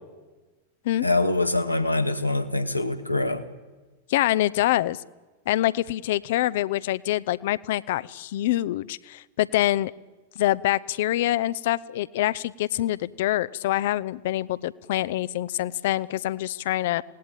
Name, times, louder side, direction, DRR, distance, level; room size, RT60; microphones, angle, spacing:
voice 1, 1.0-3.4, left 2 dB, 85° left, 8 dB, 1.8 m, -24 dB
voice 2, 4.1-5.0 5.5-9.9 10.4-17.0, left 14 dB, 55° left, 18 dB, 0.7 m, -25 dB
27.5 x 18.5 x 9.0 m, 1.2 s
figure-of-eight pair, 90°, 0 cm